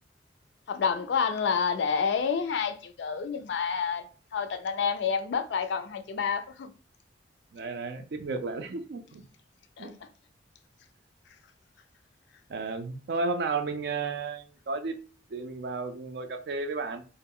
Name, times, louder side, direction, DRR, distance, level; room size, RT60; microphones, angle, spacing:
voice 1, 0.7-4.1 4.3-6.7 9.8-9.9, left 6 dB, 65° left, 0.3 m, -28 dB
voice 2, 7.5-9.2 9.8-9.9 12.5-15.0 15.3-17.0, right 4 dB, 60° right, 0.4 m, -33 dB
2.2 x 2.0 x 3.6 m
head